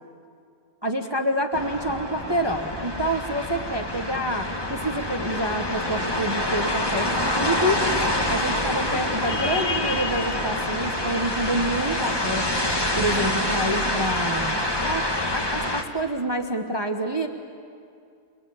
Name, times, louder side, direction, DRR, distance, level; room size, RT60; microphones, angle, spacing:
voice 1, 0.8-7.1 7.3-12.5 12.9-14.6 14.8-17.3, right 1 dB, 20° right, 4 dB, 1.1 m, -27 dB
sound 1, 1.5-15.8, left 1 dB, 15° left, 1.6 m, -26 dB
29.5 x 22.0 x 8.7 m, 2.4 s
omnidirectional pair, 1.5 m